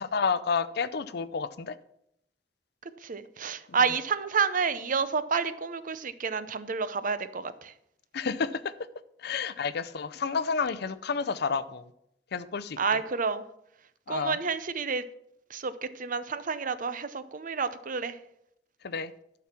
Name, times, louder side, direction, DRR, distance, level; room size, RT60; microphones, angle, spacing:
voice 1, 0.0-1.8 8.1-8.7 9.2-11.8 12.3-12.8 14.1-14.4 18.8-19.1, left 5 dB, 65° left, 15 dB, 0.5 m, -30 dB
voice 2, 3.0-7.7 12.8-13.4 14.1-15.1 15.5-18.2, right 5 dB, 50° right, 13 dB, 0.6 m, -29 dB
11.5 x 6.0 x 5.9 m, 0.77 s
head